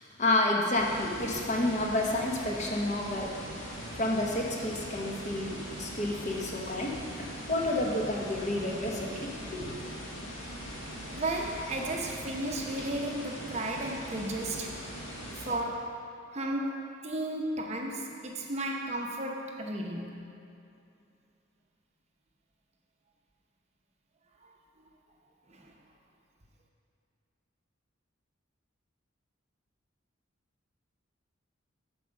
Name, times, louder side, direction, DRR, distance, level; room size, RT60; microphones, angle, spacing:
voice 1, 0.0-3.3 4.0-9.8, left 1 dB, 35° left, -1 dB, 0.9 m, -30 dB
sound 1, 0.7-15.5, equal, 70° left, 1.7 m, -41 dB
voice 2, 11.1-14.8 15.4-16.0 16.3-20.3 25.5-25.7, right 1 dB, 35° right, 0 dB, 0.7 m, -34 dB
7.9 x 4.7 x 6.3 m, 2.6 s
head